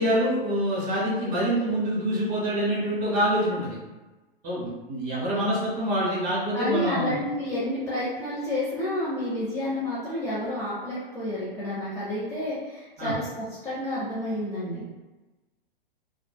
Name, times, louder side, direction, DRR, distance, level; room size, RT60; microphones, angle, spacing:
voice 1, 0.0-3.8 4.4-7.1 13.0-13.1, equal, 30° right, -7 dB, 1.5 m, -26 dB
voice 2, 6.5-14.9, left 1 dB, 10° left, -11 dB, 0.5 m, -30 dB
3.1 x 2.0 x 2.2 m, 1.2 s
figure-of-eight pair, 105°, 30 cm